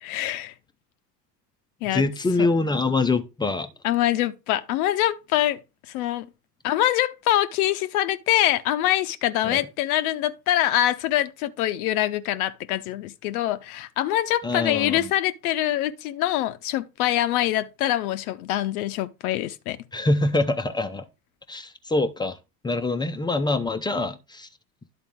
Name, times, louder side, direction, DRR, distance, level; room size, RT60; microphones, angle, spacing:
voice 1, 0.0-0.5 1.8-2.0 3.8-5.6 5.9-6.3 6.6-19.8, left 13 dB, 60° left, 0.6 m, -24 dB
voice 2, 1.9-3.7 9.4-9.7 14.4-15.1 19.9-21.0 21.5-22.4 22.6-24.5, left 2 dB, 10° left, 0.4 m, -24 dB
11.0 x 4.1 x 3.5 m
figure-of-eight pair, 65°, 49 cm